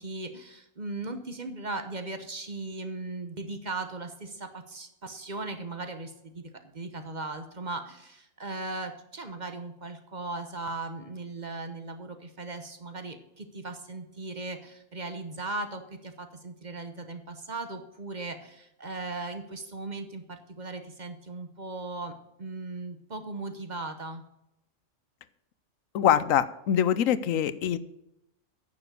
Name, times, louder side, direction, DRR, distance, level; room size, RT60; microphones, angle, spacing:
voice 1, 0.0-22.1 22.4-24.2, right 2 dB, 35° right, 8 dB, 1.1 m, -38 dB
voice 2, 25.9-27.8, left 9 dB, 85° left, 15 dB, 1.1 m, -24 dB
9.9 x 7.0 x 6.7 m, 0.85 s
omnidirectional pair, 1.3 m